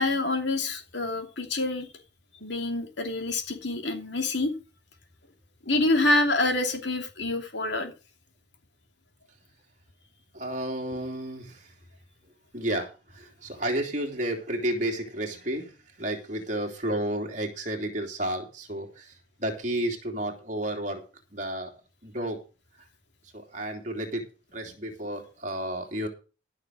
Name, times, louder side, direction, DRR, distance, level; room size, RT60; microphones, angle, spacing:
voice 1, 0.0-1.9 2.4-4.5 5.7-7.9, left 2 dB, 65° left, 2.8 m, -26 dB
voice 2, 10.3-11.7 12.5-15.7 16.0-19.1 19.4-21.0 21.3-21.7 22.0-22.4 23.3-24.2 24.5-26.1, right 1 dB, 40° right, 3.1 m, -31 dB
14.5 x 6.5 x 6.4 m
head